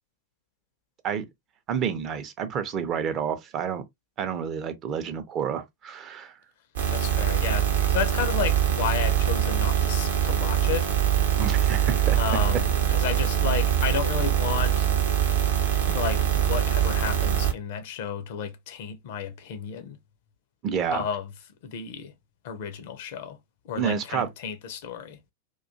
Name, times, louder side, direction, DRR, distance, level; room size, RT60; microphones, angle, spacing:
voice 1, 1.7-3.8 4.2-6.3 11.4-12.2 20.6-21.1 23.7-24.3, right 7 dB, 30° right, 0.5 m, -29 dB
sound 1, 6.8-17.5, right 9 dB, 65° right, 0.7 m, -23 dB
voice 2, 6.9-10.9 12.1-14.9 15.9-20.0 20.9-21.3 21.6-22.1 22.4-23.4 23.6-25.2, left 8 dB, 50° left, 0.5 m, -32 dB
2.4 x 2.2 x 2.6 m
figure-of-eight pair, 90°, 0 cm